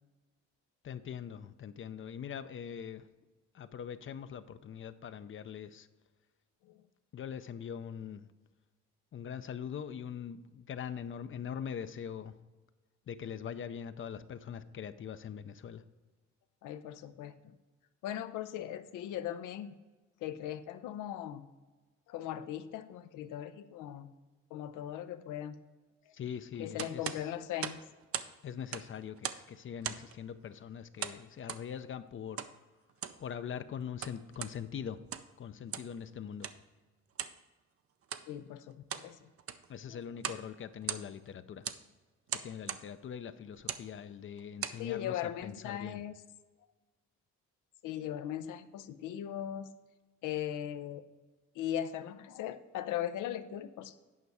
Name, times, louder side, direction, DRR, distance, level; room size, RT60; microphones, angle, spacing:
voice 1, 0.8-3.1 3.5-5.9 7.1-8.3 9.1-12.3 13.1-15.8 26.1-27.3 28.4-32.4 33.2-35.0 35.4-36.5 39.7-41.7 42.3-46.0, left 8 dB, 45° left, 12 dB, 0.5 m, -42 dB
voice 2, 16.6-17.5 18.0-19.8 20.2-21.5 22.1-24.1 24.5-25.6 26.1-26.2 26.6-27.8 38.3-39.3 39.9-40.0 44.8-46.1 47.8-49.7 50.2-51.0 51.6-54.0, left 11 dB, 90° left, 11 dB, 0.6 m, -39 dB
sound 1, 26.8-28.3 28.6-29.5 29.8-30.2 31.0-31.7 32.4-32.5 32.9-33.2 33.8-34.6 35.0-35.4 35.7-36.0 36.4-36.6 37.2-37.4 38.0-38.3 38.7-39.1 39.4-39.7 40.2-40.5 40.7-41.3 41.6-41.8 42.3-42.9 43.6-43.9 44.4-44.8, right 9 dB, 50° right, 0.5 m, -39 dB
9.5 x 5.4 x 4.7 m, 1.2 s
cardioid pair, 90°, 30 cm